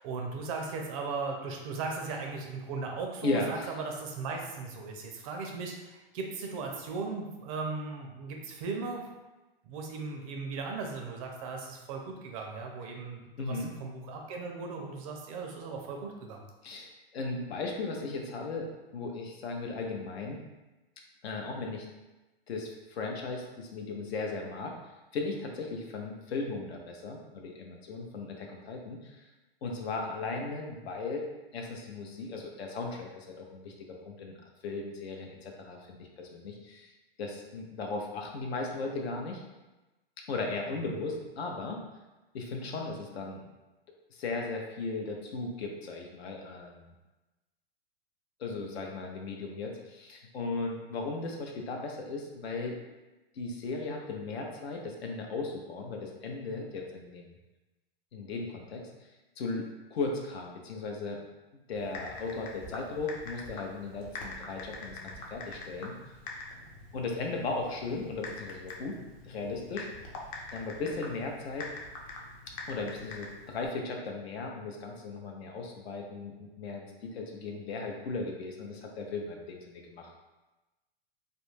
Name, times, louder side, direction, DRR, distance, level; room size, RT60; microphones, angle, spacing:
voice 1, 0.0-9.1 9.6-16.4, right 4 dB, 35° right, 2 dB, 0.4 m, -37 dB
voice 2, 3.2-3.7 13.4-13.7 16.6-20.4 21.2-21.9 22.5-24.7 25.1-29.2 29.6-31.2 31.5-33.7 34.0-34.4 34.6-36.9 37.2-39.4 40.3-41.8 42.3-43.4 44.1-46.9 48.4-52.8 53.3-57.4 58.1-58.9 59.4-61.2 61.7-66.1 66.9-69.0 69.2-69.9 70.5-71.7 72.7-80.1, left 3 dB, 80° left, 1 dB, 0.7 m, -36 dB
Typing, 61.7-73.7, left 2 dB, 35° left, 0.5 m, -44 dB
2.4 x 2.1 x 3.1 m, 1.1 s
hypercardioid pair, 130°, 31 cm